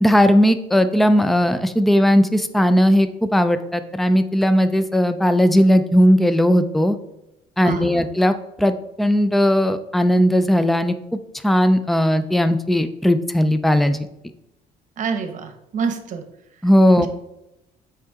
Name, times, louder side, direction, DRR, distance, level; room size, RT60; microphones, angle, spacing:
voice 1, 0.0-7.0 7.6-10.9 11.4-14.1 16.6-17.1, equal, ahead, 10 dB, 0.4 m, -17 dB
voice 2, 7.6-8.0 15.0-16.2 16.9-17.1, right 6 dB, 50° right, 7 dB, 0.9 m, -27 dB
6.0 x 4.7 x 3.6 m, 0.87 s
cardioid pair, 110°, 17 cm